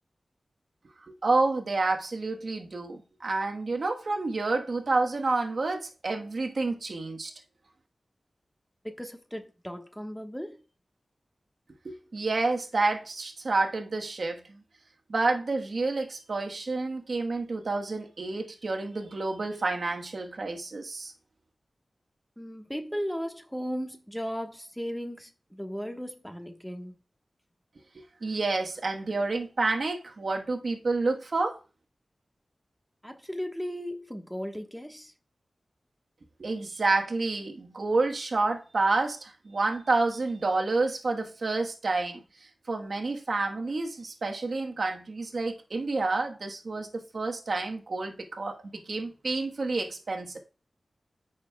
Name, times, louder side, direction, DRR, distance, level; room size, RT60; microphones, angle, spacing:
voice 1, 1.1-7.3 11.8-14.6 15.1-21.1 27.9-31.6 36.4-42.2 42.7-50.4, right 3 dB, 65° right, 1.3 m, -29 dB
voice 2, 8.8-10.6 22.4-27.0 33.0-35.1, equal, 5° left, 1.3 m, -36 dB
14.0 x 6.3 x 2.3 m
wide cardioid pair, 90°, 0 cm